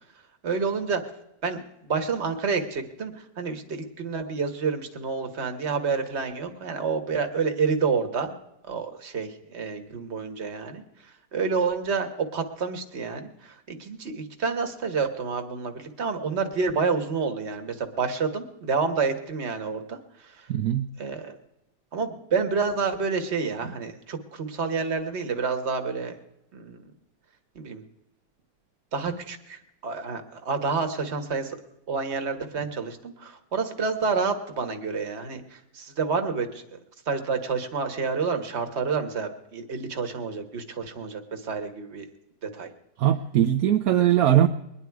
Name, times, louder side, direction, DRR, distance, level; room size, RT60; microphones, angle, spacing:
voice 1, 0.4-1.0 1.4-8.3 8.7-20.5 21.0-21.4 21.9-26.2 26.5-26.8 27.5-27.8 28.9-31.6 31.9-36.8 37.1-42.1 42.4-42.7, right 5 dB, 45° right, 6 dB, 1.6 m, -29 dB
voice 2, 20.5-20.9 43.0-44.5, right 11 dB, 70° right, 6 dB, 1.1 m, -20 dB
22.0 x 10.0 x 4.7 m, 0.86 s
omnidirectional pair, 1.7 m